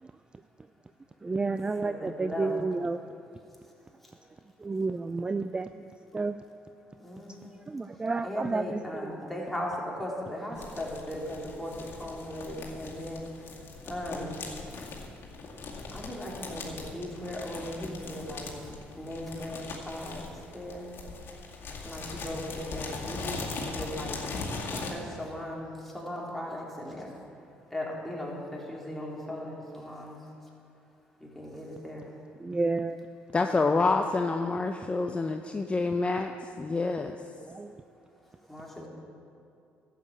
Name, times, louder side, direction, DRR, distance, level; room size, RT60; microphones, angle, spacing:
voice 1, 1.2-3.0 4.6-6.4 7.7-9.3 32.4-33.0 36.0-36.4 37.4-37.8, right 3 dB, 20° right, 10 dB, 0.4 m, -31 dB
voice 2, 1.8-2.6 7.0-7.6 8.2-11.7 12.0-13.3 13.8-14.3 15.9-18.5 19.0-20.2 20.5-20.9 21.8-24.2 24.9-25.6 25.9-27.1 27.7-30.2 31.2-32.1 33.4-33.8 38.5-38.9, left 1 dB, 5° left, -3 dB, 3.5 m, -38 dB
sound 1, 10.6-24.9, left 3 dB, 55° left, 2.2 m, -40 dB
voice 3, 33.3-36.3 36.6-37.2, left 3 dB, 25° left, 5 dB, 0.7 m, -27 dB
12.0 x 7.7 x 8.2 m, 2.7 s
supercardioid pair, 70°, 4 cm